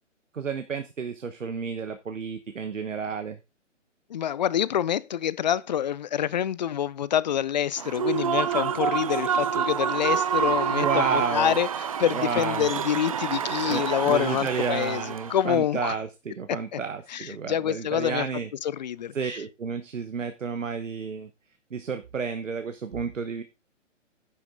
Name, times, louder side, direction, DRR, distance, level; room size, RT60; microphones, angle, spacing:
voice 1, 0.3-3.4 10.7-11.6 12.1-12.7 13.6-18.5 19.1-21.3 21.7-23.4, right 5 dB, 75° right, 1.2 m, -31 dB
voice 2, 4.1-11.7 12.0-16.0 16.7-16.8 17.1-18.3 18.6-19.1, left 10 dB, 35° left, 0.4 m, -26 dB
Human voice / Cheering / Applause, 7.8-15.4, right 8 dB, 30° right, 0.4 m, -28 dB
10.5 x 7.4 x 3.8 m
figure-of-eight pair, 130°, 38 cm